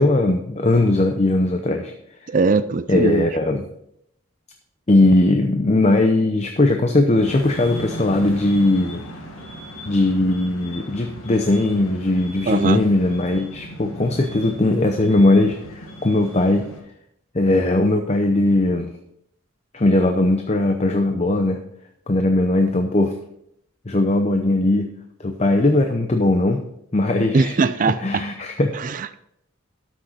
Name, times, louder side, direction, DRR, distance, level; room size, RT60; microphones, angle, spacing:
voice 1, 0.0-1.9 2.9-3.7 4.9-9.0 9.9-16.7 17.3-18.9 19.7-21.6 22.1-23.1 23.9-24.9 25.2-26.6 26.9-27.5 28.0-28.8, left 2 dB, 35° left, 5 dB, 0.7 m, -19 dB
voice 2, 2.3-3.3 12.5-12.8 27.3-28.3 28.7-29.1, right 4 dB, 40° right, 13 dB, 0.4 m, -20 dB
sound 1, 7.2-16.8, equal, 90° left, 2.0 m, -37 dB
13.0 x 6.3 x 4.2 m, 0.76 s
head